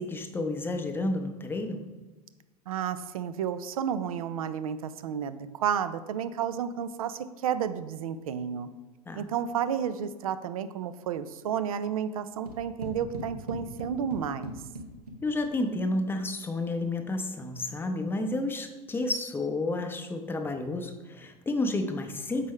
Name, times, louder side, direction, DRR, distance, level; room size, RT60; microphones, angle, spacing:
voice 1, 0.0-1.8 9.1-9.2 15.2-22.5, left 2 dB, 10° left, 6 dB, 0.6 m, -31 dB
voice 2, 2.7-8.7 9.2-14.5, right 8 dB, 65° right, 13 dB, 0.4 m, -31 dB
sound 1, 12.5-15.7, equal, 85° right, 0.8 m, -41 dB
6.6 x 5.1 x 3.6 m, 1.2 s
figure-of-eight pair, 80°, 19 cm